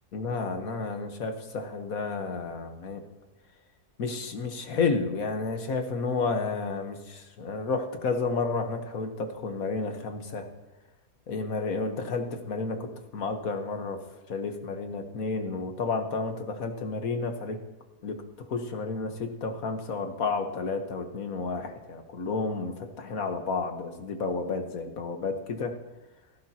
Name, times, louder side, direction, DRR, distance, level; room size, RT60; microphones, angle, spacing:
voice 1, 0.1-3.0 4.0-10.4 11.3-17.6 18.0-18.2 18.5-25.8, left 4 dB, 60° left, 6 dB, 1.6 m, -31 dB
16.5 x 14.5 x 2.9 m, 1.1 s
omnidirectional pair, 1.7 m